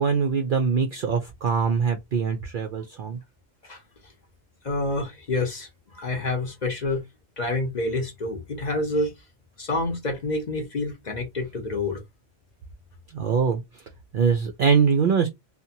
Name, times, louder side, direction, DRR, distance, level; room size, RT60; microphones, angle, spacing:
voice 1, 0.0-3.2 13.1-13.8 14.1-15.3, right 6 dB, 65° right, 0.5 m, -23 dB
voice 2, 3.6-4.1 4.6-7.0 7.4-9.1 9.6-12.0, left 2 dB, 45° left, 0.7 m, -28 dB
2.7 x 2.2 x 2.7 m
omnidirectional pair, 1.3 m